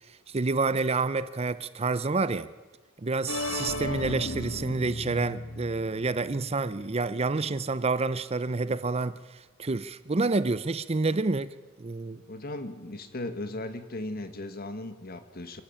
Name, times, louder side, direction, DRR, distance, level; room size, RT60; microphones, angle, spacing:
voice 1, 0.3-2.5 3.0-12.2, right 3 dB, 30° right, 0.6 m, -28 dB
sound 1, 3.3-7.0, left 2 dB, 80° left, 1.6 m, -36 dB
voice 2, 12.3-15.6, left 1 dB, 50° left, 1.7 m, -37 dB
26.5 x 12.0 x 8.7 m
head